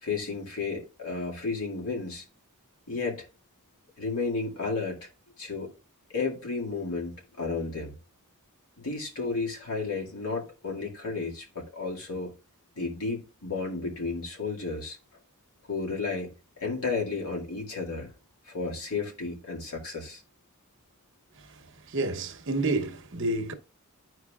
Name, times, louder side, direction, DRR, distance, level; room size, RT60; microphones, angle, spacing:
voice 1, 0.0-2.2 2.9-3.3 4.0-5.1 5.4-5.7 6.1-7.9 8.8-12.3 12.8-15.0 15.7-18.1 18.5-20.2, left 4 dB, 85° left, 2.1 m, -32 dB
voice 2, 21.9-23.5, right 2 dB, 55° right, 0.9 m, -29 dB
11.5 x 4.6 x 2.3 m
head